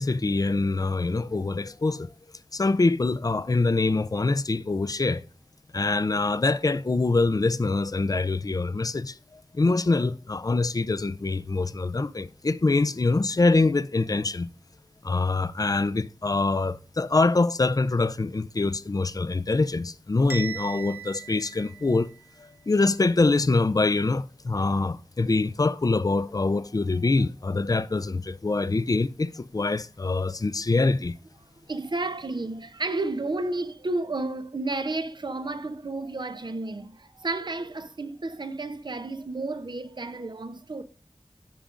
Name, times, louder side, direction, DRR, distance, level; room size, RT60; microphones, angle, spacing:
voice 1, 0.0-2.1 2.5-5.2 5.7-9.2 9.5-14.5 15.0-22.1 22.4-31.1, left 3 dB, 40° left, 0.4 m, -24 dB
Bell, 20.3-22.3, right 7 dB, 20° right, 1.1 m, -38 dB
voice 2, 31.7-40.8, right 2 dB, 55° right, 0.7 m, -32 dB
15.0 x 5.1 x 2.5 m
wide cardioid pair, 50°, 9 cm